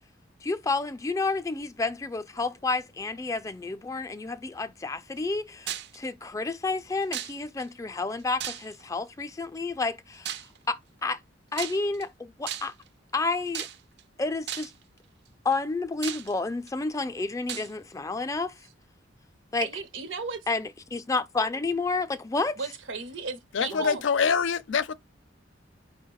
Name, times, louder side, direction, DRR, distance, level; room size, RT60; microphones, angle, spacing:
voice 1, 0.4-10.3 10.7-11.2 11.5-12.7 13.1-13.7 14.2-14.7 15.4-18.5 19.5-19.7 20.5-22.6 23.7-23.9, left 3 dB, 15° left, 0.4 m, -30 dB
sound 1, 5.7-6.0 7.1-7.6 8.4-8.9 10.2-10.6 11.5-12.0 12.5-12.9 13.5-14.0 14.5-14.8 15.5-15.6 16.0-16.7 17.5-17.7, right 10 dB, 60° right, 0.4 m, -35 dB
voice 2, 19.6-20.4 22.6-24.0, right 4 dB, 85° right, 0.8 m, -34 dB
voice 3, 23.5-24.9, left 6 dB, 80° left, 0.4 m, -25 dB
4.9 x 2.1 x 4.6 m
head